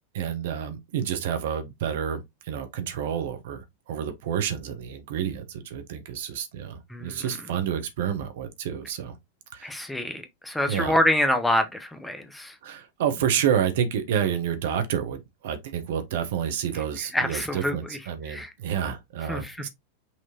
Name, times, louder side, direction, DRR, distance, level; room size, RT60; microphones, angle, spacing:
voice 1, 0.1-9.2 9.5-9.7 10.7-11.0 12.6-19.7, right 8 dB, 55° right, 1.0 m, -29 dB
voice 2, 6.9-7.3 9.6-12.5 16.7-16.8 17.1-18.0 18.3-18.5 19.3-19.7, left 1 dB, 5° left, 0.7 m, -26 dB
5.8 x 3.0 x 2.8 m
figure-of-eight pair, 90°, 0 cm